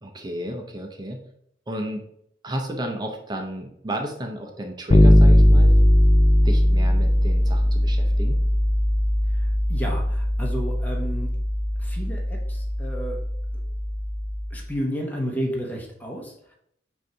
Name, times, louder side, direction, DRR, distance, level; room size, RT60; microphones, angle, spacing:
voice 1, 0.0-1.2 1.7-2.1 2.4-5.7 6.4-8.4, right 1 dB, 20° right, 3 dB, 0.6 m, -32 dB
Bass guitar, 4.9-14.6, left 1 dB, 25° left, 0.4 m, -19 dB
voice 2, 9.4-11.3 11.8-13.2 14.5-16.5, equal, 10° left, -2 dB, 1.1 m, -32 dB
6.3 x 2.7 x 5.6 m, 0.72 s
head